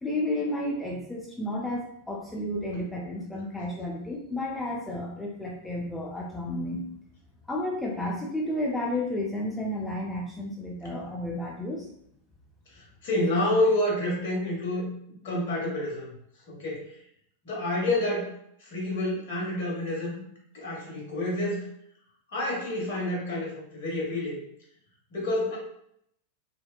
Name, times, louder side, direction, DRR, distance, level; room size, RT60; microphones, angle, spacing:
voice 1, 0.0-6.9 7.5-11.9, left 1 dB, 10° left, -3 dB, 0.5 m, -32 dB
voice 2, 12.7-14.8 15.2-16.1 16.5-17.0 17.4-18.3 18.6-20.2 20.5-21.6 22.3-24.4 25.1-25.6, left 1 dB, 55° left, -3 dB, 1.3 m, -28 dB
3.2 x 2.8 x 2.2 m, 0.72 s
figure-of-eight pair, 90°, 0 cm